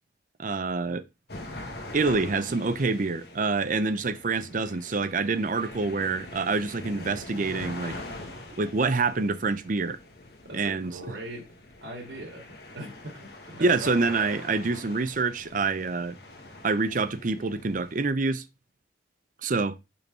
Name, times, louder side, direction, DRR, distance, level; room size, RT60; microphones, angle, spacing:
voice 1, 0.4-1.0 1.9-8.0 8.6-10.0 10.5-11.0 13.6-16.2 16.6-18.4 19.4-19.8, right 3 dB, 45° right, 0.6 m, -26 dB
sound 1, 1.3-18.1, left 2 dB, 60° left, 1.7 m, -43 dB
voice 2, 10.4-11.5 11.8-12.5 12.7-14.3, right 1 dB, 80° right, 2.4 m, -40 dB
5.7 x 4.4 x 5.4 m
head